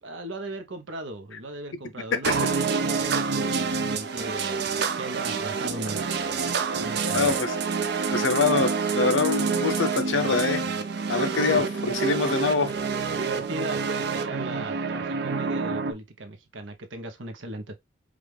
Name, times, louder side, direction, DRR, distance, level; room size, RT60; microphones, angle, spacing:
voice 1, 0.0-6.1 6.7-7.3 11.4-11.6 13.1-17.8, right 1 dB, 80° right, 0.9 m, -37 dB
voice 2, 2.1-2.5 7.1-7.6 8.1-10.6 11.1-12.7, left 4 dB, 85° left, 0.7 m, -25 dB
sound 1, 2.2-15.9, right 5 dB, 60° right, 0.6 m, -27 dB
4.9 x 2.5 x 3.3 m
head